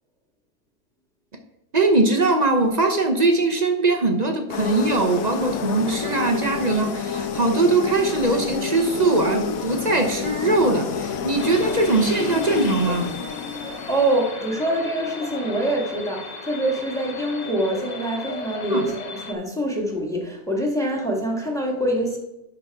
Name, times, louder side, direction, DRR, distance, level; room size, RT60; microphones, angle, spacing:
voice 1, 1.7-13.1 18.7-18.9, right 2 dB, 40° right, 4 dB, 0.6 m, -21 dB
sound 1, 4.5-14.3, left 6 dB, 65° left, 1.0 m, -29 dB
sound 2, 11.4-19.3, left 3 dB, 45° left, 0.5 m, -36 dB
voice 2, 13.6-22.2, right 1 dB, ahead, 0 dB, 1.5 m, -25 dB
11.5 x 3.9 x 4.7 m, 0.93 s
omnidirectional pair, 1.9 m